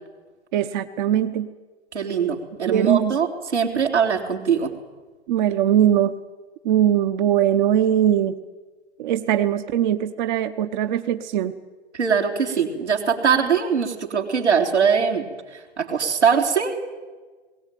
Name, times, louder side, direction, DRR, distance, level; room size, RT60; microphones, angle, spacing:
voice 1, 0.5-1.5 2.7-3.2 5.3-6.2 6.6-8.4 9.0-11.5, right 10 dB, 45° right, 8 dB, 1.0 m, -21 dB
voice 2, 1.9-4.7 11.9-15.2 15.8-16.8, right 6 dB, 85° right, 1 dB, 3.8 m, -21 dB
21.0 x 17.5 x 9.2 m, 1.3 s
hypercardioid pair, 120°, 33 cm